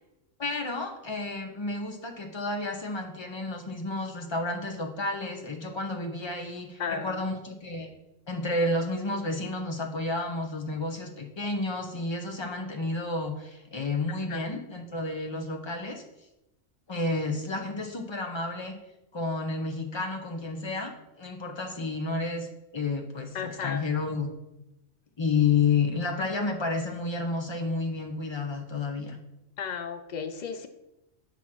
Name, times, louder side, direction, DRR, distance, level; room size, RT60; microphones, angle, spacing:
voice 1, 0.4-7.9 8.3-16.0 16.9-18.8 19.1-22.5 22.7-24.3 25.2-29.2, left 3 dB, 25° left, 4 dB, 0.7 m, -31 dB
voice 2, 6.8-7.2 14.3-14.4 23.3-23.8 29.6-30.7, left 6 dB, 90° left, 8 dB, 0.4 m, -34 dB
8.1 x 3.0 x 5.8 m, 0.94 s
omnidirectional pair, 1.3 m